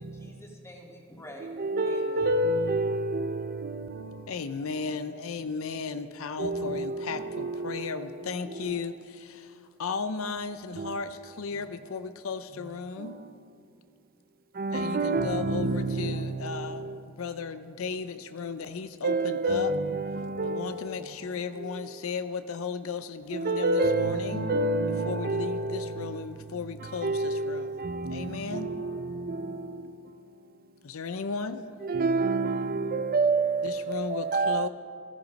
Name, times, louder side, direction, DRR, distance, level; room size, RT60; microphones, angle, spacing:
voice 1, 0.0-1.5 1.9-2.5, equal, 15° left, 2.2 m, -47 dB
voice 2, 1.4-4.2 6.4-8.1 8.5-8.7 10.8-11.0 13.0-13.2 14.6-17.0 19.0-20.9 21.6-21.9 23.3-26.2 26.8-29.7 31.8-34.7, right 2 dB, 45° right, 0.6 m, -29 dB
voice 3, 4.3-13.2 14.7-19.7 20.4-24.5 25.0-27.8 28.1-28.7 30.8-31.7 33.6-34.7, left 5 dB, 70° left, 0.6 m, -35 dB
15.5 x 14.5 x 5.2 m
head